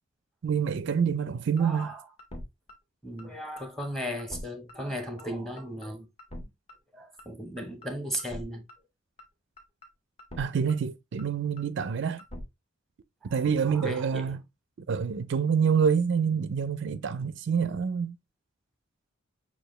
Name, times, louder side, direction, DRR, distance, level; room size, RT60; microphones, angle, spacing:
voice 1, 0.4-1.9 10.4-12.2 13.3-14.4 14.9-18.2, right 6 dB, 55° right, 0.4 m, -27 dB
sound 1, 1.2-1.3 1.6-1.9 2.2-2.4 2.7-2.8 3.2-3.3 3.6-3.9 4.2-4.4 4.7-4.8 5.2-5.3 5.6-5.9 6.2-6.4 6.7-6.8 7.2-7.3 7.6-7.9 8.2-8.4 8.7-8.8 9.2-9.3 9.6-9.9 10.2-10.4 10.7-10.8 11.2-11.3 11.6-11.9 12.2-12.4, left 1 dB, 30° left, 1.3 m, -43 dB
voice 2, 1.6-2.0 3.0-6.1 6.9-8.7 13.2-14.4, equal, ahead, 0.9 m, -36 dB
6.8 x 2.4 x 3.1 m
head